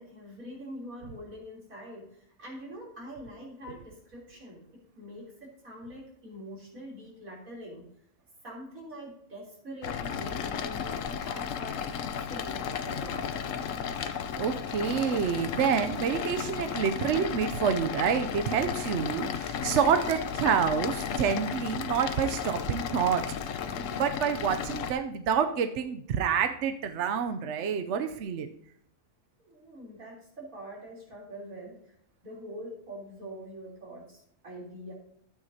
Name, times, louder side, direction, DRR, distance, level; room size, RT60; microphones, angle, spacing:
voice 1, 0.0-4.6 5.0-7.9 8.4-13.4 29.4-31.8 32.2-34.9, equal, 85° right, -4 dB, 3.8 m, -44 dB
sound 1, 9.8-24.9, left 7 dB, 70° left, 1.1 m, -34 dB
voice 2, 14.4-23.2 24.0-28.5, right 7 dB, 65° right, 7 dB, 0.9 m, -28 dB
12.5 x 8.7 x 2.8 m, 0.69 s
omnidirectional pair, 1.4 m